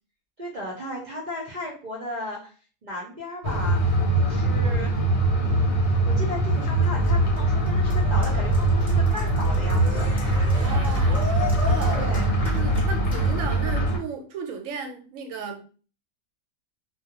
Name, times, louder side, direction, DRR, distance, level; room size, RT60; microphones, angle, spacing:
voice 1, 0.4-2.5 2.8-4.9 5.4-10.1 11.9-12.4, equal, 50° right, -4 dB, 0.6 m, -35 dB
sound 1, 3.4-14.0, right 1 dB, 80° left, 1.1 m, -22 dB
Cheering, 6.5-13.5, left 1 dB, 5° right, 0.9 m, -36 dB
sound 2, 7.0-13.9, right 1 dB, 60° left, 0.6 m, -31 dB
voice 2, 10.5-12.0 12.5-15.6, right 5 dB, 85° right, 4 dB, 1.0 m, -35 dB
2.3 x 2.1 x 2.8 m, 0.39 s
omnidirectional pair, 1.4 m